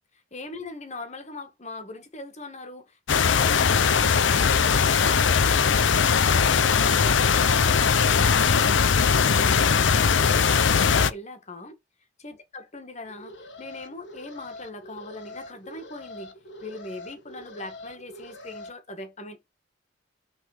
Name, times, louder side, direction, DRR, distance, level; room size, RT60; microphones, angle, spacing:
voice 1, 0.1-11.8 12.2-16.3 16.6-19.5, left 2 dB, 40° left, 1.8 m, -41 dB
sound 1, 3.1-11.1, left 6 dB, 80° left, 0.6 m, -20 dB
Alarm, 13.1-18.7, left 2 dB, 65° left, 1.5 m, -44 dB
6.4 x 4.1 x 5.0 m
head